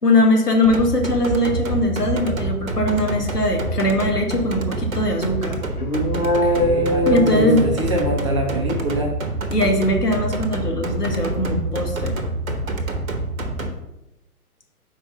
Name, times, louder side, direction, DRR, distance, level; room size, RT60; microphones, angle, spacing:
voice 1, 0.0-5.6 7.0-7.6 9.5-12.2, left 1 dB, 85° left, 2 dB, 1.4 m, -20 dB
sound 1, 0.6-13.7, right 2 dB, 60° right, 0.9 m, -27 dB
sound 2, 5.8-8.3, equal, 70° left, 1.2 m, -21 dB
voice 2, 6.2-9.1, right 1 dB, 20° right, -1 dB, 0.6 m, -26 dB
4.9 x 3.9 x 5.2 m, 0.91 s
figure-of-eight pair, 125°, 46 cm